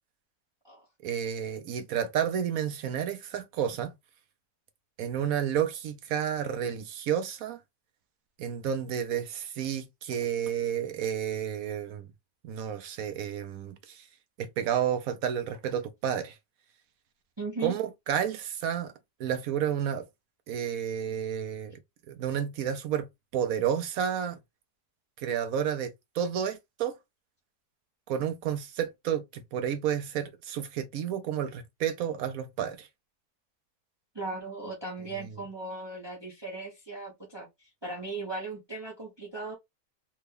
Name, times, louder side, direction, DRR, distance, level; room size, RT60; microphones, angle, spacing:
voice 1, 1.0-3.9 5.0-7.6 8.4-12.1 12.4-14.1 14.4-16.4 17.6-18.9 19.2-20.1 20.5-21.7 22.1-23.1 23.3-24.4 25.2-27.0 28.1-32.9, right 9 dB, 70° right, 0.9 m, -31 dB
voice 2, 17.4-17.7 34.1-37.5 37.8-39.5, right 2 dB, 25° right, 0.7 m, -37 dB
3.4 x 2.2 x 3.3 m
omnidirectional pair, 1.7 m